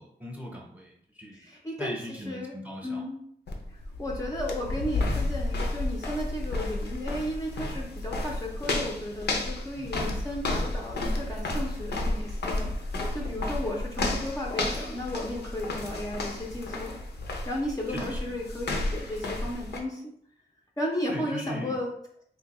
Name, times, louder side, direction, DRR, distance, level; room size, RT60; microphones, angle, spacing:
voice 1, 0.0-1.4 1.8-3.0 3.5-3.6 9.7-10.3 17.9-18.2 21.1-21.8, equal, 10° right, -2 dB, 0.8 m, -39 dB
voice 2, 1.3-1.9 2.3-2.6 2.8-3.2 3.7-16.9 17.4-20.0 20.8-21.9, left 1 dB, 20° left, -2 dB, 0.5 m, -34 dB
sound 1, 3.5-19.8, left 2 dB, 80° left, 0.6 m, -32 dB
3.5 x 2.7 x 3.0 m, 0.68 s
wide cardioid pair, 110°, 17 cm